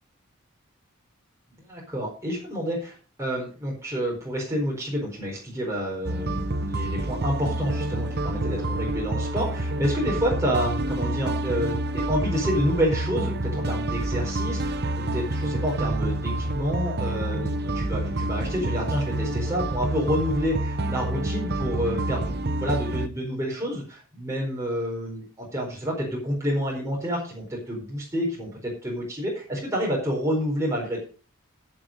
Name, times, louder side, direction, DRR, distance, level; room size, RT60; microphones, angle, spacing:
voice 1, 1.7-31.0, equal, 15° right, -3 dB, 4.4 m, -29 dB
sound 1, 6.0-23.1, right 1 dB, 50° right, 0.8 m, -28 dB
14.5 x 6.8 x 5.1 m, 0.38 s
head